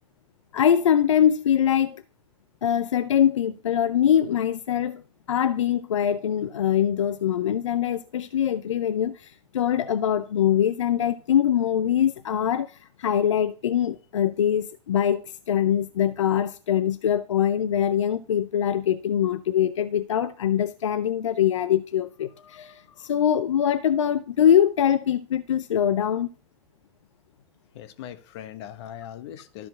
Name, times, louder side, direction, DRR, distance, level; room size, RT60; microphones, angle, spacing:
voice 1, 0.5-2.0 2.6-5.0 5.3-26.3, left 9 dB, 85° left, 0.5 m, -23 dB
voice 2, 27.7-29.7, left 11 dB, 65° left, 1.2 m, -40 dB
12.5 x 4.4 x 5.7 m
hypercardioid pair, 100°, 15 cm